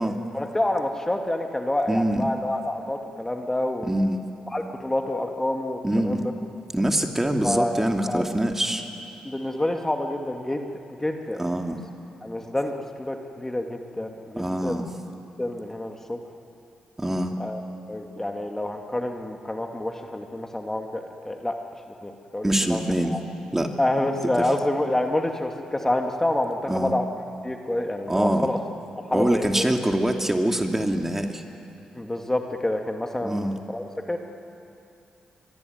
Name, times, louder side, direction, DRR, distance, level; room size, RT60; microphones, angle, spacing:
voice 1, 0.3-3.9 4.5-6.3 7.4-7.7 8.1-8.2 9.2-11.4 12.2-14.8 15.4-16.2 17.4-17.6 17.9-21.6 22.0-23.2 23.8-27.1 27.4-28.6 29.0-29.7 32.0-34.2, left 1 dB, 15° left, 4 dB, 2.4 m, -28 dB
voice 2, 1.9-2.3 3.8-4.2 5.8-6.2 6.7-8.8 11.4-11.8 14.4-14.8 17.0-17.3 22.4-23.1 23.5-23.7 26.7-26.9 28.1-28.5 29.1-31.4 33.2-33.5, right 1 dB, 15° right, 4 dB, 2.8 m, -24 dB
23.5 x 23.0 x 9.5 m, 2.7 s
hypercardioid pair, 45°, 3 cm